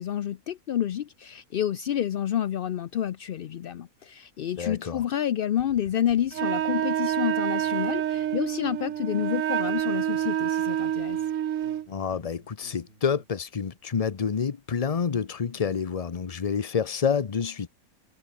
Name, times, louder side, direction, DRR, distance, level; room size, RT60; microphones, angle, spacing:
voice 1, 0.0-11.2, left 10 dB, 65° left, 0.5 m, -29 dB
voice 2, 4.6-5.0 11.9-17.7, left 6 dB, 30° left, 0.7 m, -28 dB
sound 1, 5.6-7.3 7.6-9.4 9.6-13.4, right 1 dB, 45° right, 6.6 m, -55 dB
Wind instrument woodwind instrument, 6.3-11.9, right 10 dB, 65° right, 1.1 m, -27 dB
omnidirectional pair, 1.5 m